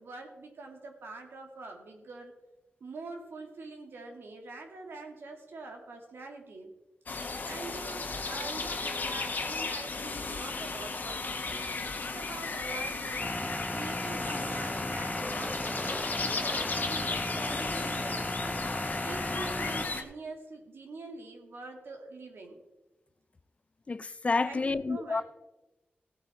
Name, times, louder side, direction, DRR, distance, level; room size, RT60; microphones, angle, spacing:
voice 1, 0.0-2.3 2.8-6.7 7.4-11.7 11.9-13.3 13.7-18.6 19.0-22.6 24.4-25.2, right 3 dB, 80° right, 2.4 m, -44 dB
sound 1, 7.1-20.0, left 3 dB, 50° left, 1.5 m, -35 dB
sound 2, 13.2-19.9, left 1 dB, 10° left, 0.8 m, -35 dB
voice 2, 23.9-25.2, left 3 dB, 35° left, 0.4 m, -29 dB
16.5 x 8.3 x 4.2 m
wide cardioid pair, 90°, 4 cm